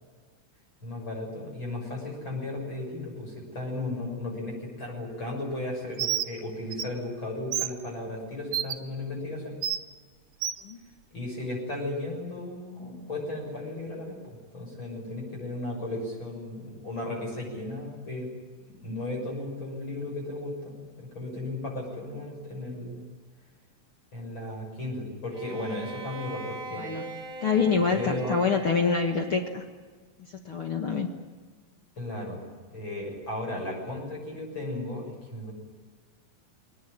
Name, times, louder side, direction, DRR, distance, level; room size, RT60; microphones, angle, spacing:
voice 1, 0.8-9.6 11.1-18.3 18.7-23.0 24.1-26.9 27.9-28.4 32.0-35.5, left 2 dB, 30° left, -1 dB, 7.4 m, -35 dB
Bird, 6.0-6.3 6.7-6.8 7.5-7.7 8.5-8.7 9.6-9.8 10.4-10.6, right 10 dB, 70° right, 1.4 m, -28 dB
Bowed string instrument, 25.3-29.7, right 2 dB, 25° right, 3.4 m, -41 dB
voice 2, 26.8-29.6 30.2-31.1, left 5 dB, 50° left, 3 dB, 1.7 m, -26 dB
22.5 x 19.0 x 9.9 m, 1.5 s
omnidirectional pair, 4.1 m